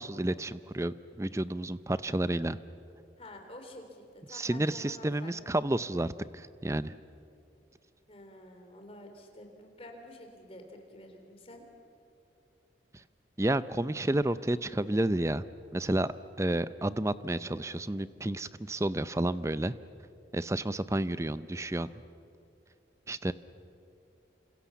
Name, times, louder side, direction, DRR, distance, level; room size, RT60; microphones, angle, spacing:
voice 1, 0.0-2.6 4.3-7.0 13.4-15.4 15.7-19.7 20.3-21.9 23.1-23.3, right 1 dB, 15° right, 15 dB, 0.5 m, -31 dB
voice 2, 3.2-5.3 8.1-11.7, left 1 dB, 30° left, 4 dB, 3.3 m, -49 dB
28.0 x 26.5 x 7.2 m, 2.6 s
head